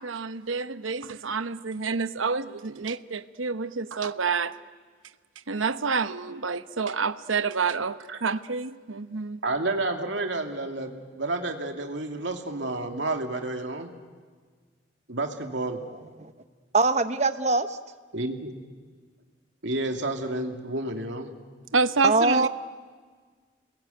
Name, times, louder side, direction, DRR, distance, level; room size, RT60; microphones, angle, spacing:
voice 1, 0.0-4.5 5.5-9.4 21.7-22.5, right 4 dB, 90° right, 12 dB, 0.9 m, -28 dB
voice 2, 9.4-13.9 15.1-15.8 18.1-18.5 19.6-21.3, right 2 dB, 65° right, 4 dB, 2.5 m, -30 dB
voice 3, 16.7-17.8 22.0-22.5, right 3 dB, 35° right, 10 dB, 1.0 m, -22 dB
29.0 x 21.0 x 9.2 m, 1.5 s
head